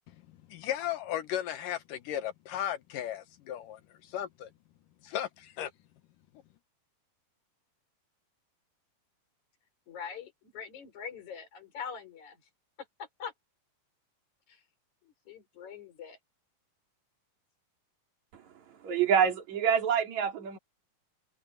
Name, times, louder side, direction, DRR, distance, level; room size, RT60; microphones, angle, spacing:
voice 1, 0.1-4.5 5.0-5.7, left 11 dB, 80° left, 2.8 m, -36 dB
voice 2, 9.9-12.4 12.8-13.3 14.5-14.6 15.0-16.2, left 7 dB, 60° left, 6.1 m, -43 dB
voice 3, 18.8-20.6, right 8 dB, 55° right, 4.6 m, -26 dB
omnidirectional pair, 3.9 m